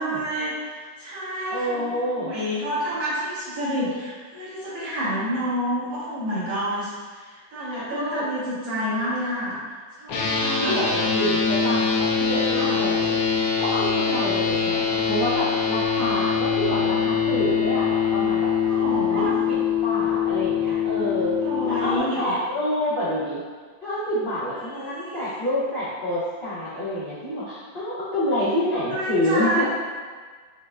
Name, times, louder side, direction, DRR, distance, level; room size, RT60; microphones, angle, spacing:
voice 1, 0.0-9.6 10.0-10.8 12.5-12.8 18.6-19.3 21.4-22.3 24.6-25.3 28.7-29.6, equal, 75° right, -10 dB, 2.1 m, -29 dB
voice 2, 1.5-2.3 7.9-8.2 10.6-13.2 13.6-18.5 19.1-21.3 21.6-23.4 23.8-29.6, left 1 dB, 55° left, -12 dB, 0.6 m, -27 dB
sound 1, 10.1-22.0, left 6 dB, 70° left, 1.0 m, -23 dB
6.2 x 2.2 x 2.4 m, 1.5 s
omnidirectional pair, 2.0 m